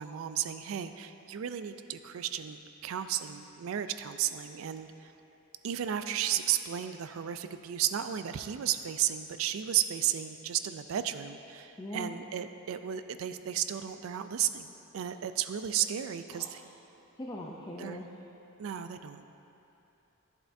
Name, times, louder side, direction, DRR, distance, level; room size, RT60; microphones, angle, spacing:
voice 1, 0.0-5.1 5.6-14.7 14.9-16.6 17.8-18.0 18.6-19.3, right 10 dB, 70° right, 10 dB, 0.3 m, -33 dB
voice 2, 11.8-12.2 16.3-16.6 17.2-18.2, left 1 dB, 20° left, -2 dB, 0.4 m, -41 dB
11.0 x 7.9 x 2.6 m, 3.0 s
head